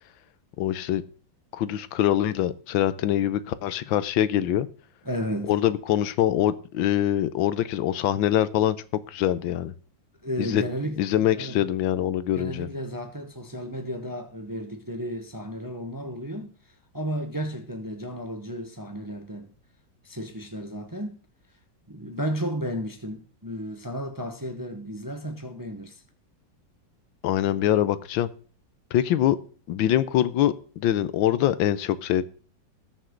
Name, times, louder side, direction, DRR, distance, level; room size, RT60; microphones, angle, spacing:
voice 1, 0.6-1.0 1.5-4.7 5.5-8.8 9.1-9.7 10.4-10.6 11.0-12.7 27.2-28.3 28.9-29.4 29.7-32.2, left 11 dB, 85° left, 1.5 m, -24 dB
voice 2, 5.0-5.5 10.2-11.0 11.4-11.6 12.3-16.5 16.9-19.5 20.0-21.2 21.9-26.0, equal, 15° right, 0.8 m, -33 dB
19.0 x 6.6 x 3.8 m
omnidirectional pair, 2.1 m